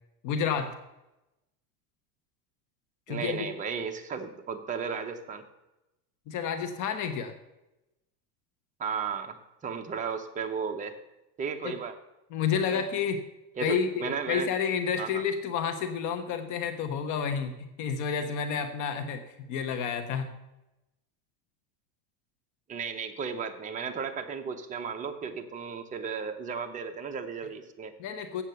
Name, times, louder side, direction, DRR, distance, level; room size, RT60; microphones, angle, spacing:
voice 1, 0.2-0.8 3.1-3.5 6.3-7.3 11.6-11.8 12.3-13.2 13.6-20.3 28.0-28.4, left 6 dB, 45° left, 8 dB, 1.0 m, -30 dB
voice 2, 3.1-5.4 8.8-9.4 9.6-11.0 11.4-11.9 12.7-12.8 13.6-14.5 15.0-15.2 22.7-27.9, right 6 dB, 15° right, 4 dB, 0.8 m, -34 dB
8.3 x 7.3 x 6.8 m, 0.94 s
supercardioid pair, 140°, 44 cm